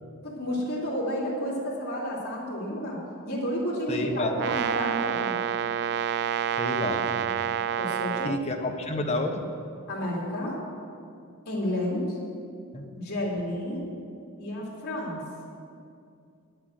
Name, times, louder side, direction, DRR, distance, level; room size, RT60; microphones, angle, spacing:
voice 1, 0.2-3.0 3.2-5.3 7.8-8.4 9.9-10.6 11.4-12.2 12.9-13.8 14.4-15.2, equal, 50° left, -5 dB, 3.0 m, -31 dB
voice 2, 3.9-4.6 6.6-7.2 8.2-9.4 12.7-12.8, left 2 dB, 30° left, 3 dB, 1.1 m, -30 dB
Brass instrument, 4.4-8.4, right 9 dB, 50° right, 0.3 m, -28 dB
10.0 x 7.9 x 8.0 m, 2.4 s
head